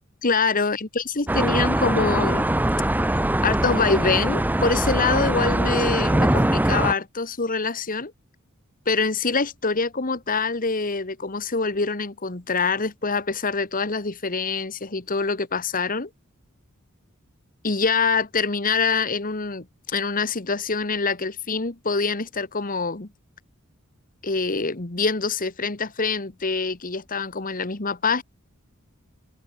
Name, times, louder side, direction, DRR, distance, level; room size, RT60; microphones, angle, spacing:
voice 1, 0.2-2.5 3.4-8.1 8.8-16.1 17.6-23.1 24.2-28.2, left 4 dB, 40° left, 1.7 m, -25 dB
sound 1, 1.3-6.9, right 1 dB, 10° right, 0.7 m, -22 dB
head